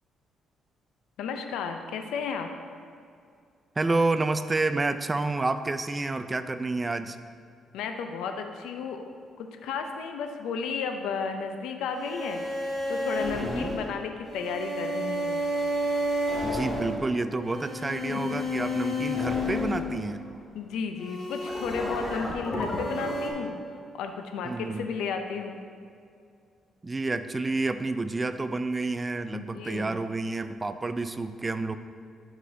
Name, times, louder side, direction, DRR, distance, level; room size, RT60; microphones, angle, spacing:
voice 1, 1.2-2.5 7.7-9.0 9.4-12.4 12.9-15.4 18.1-18.2 20.5-25.6 29.3-30.0, left 5 dB, 90° left, 5 dB, 0.5 m, -33 dB
voice 2, 3.8-7.2 13.3-13.8 16.4-20.2 24.4-24.9 26.8-31.8, right 3 dB, 25° right, 10 dB, 0.3 m, -29 dB
sound 1, 11.9-20.4 21.0-23.3, left 1 dB, 30° left, 1.6 m, -31 dB
12.5 x 4.9 x 2.7 m, 2.3 s
cardioid pair, 90°, 0 cm